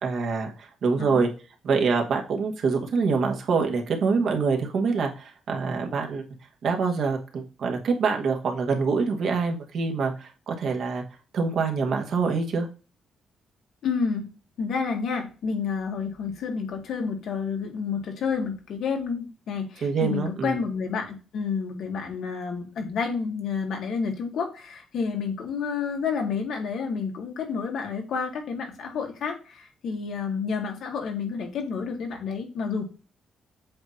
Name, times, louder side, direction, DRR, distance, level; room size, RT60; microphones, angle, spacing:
voice 1, 0.0-1.3 1.6-6.2 6.6-11.0 11.3-12.7 19.8-20.6, right 4 dB, 55° right, 3 dB, 1.3 m, -25 dB
voice 2, 13.8-14.3 14.6-32.8, left 5 dB, 65° left, 3 dB, 1.7 m, -30 dB
7.9 x 2.9 x 5.1 m, 0.34 s
cardioid pair, 160°, 0 cm